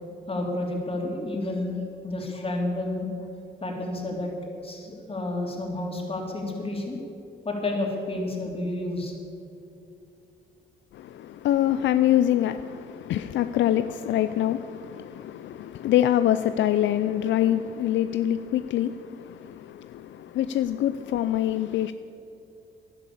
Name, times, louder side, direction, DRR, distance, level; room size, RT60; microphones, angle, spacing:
voice 1, 0.3-3.1 3.6-7.0 7.4-9.1, left 2 dB, 30° left, 3.3 m, -30 dB
voice 2, 10.9-21.9, left 12 dB, 70° left, 0.5 m, -25 dB
12.0 x 11.0 x 8.5 m
cardioid pair, 90°, 20 cm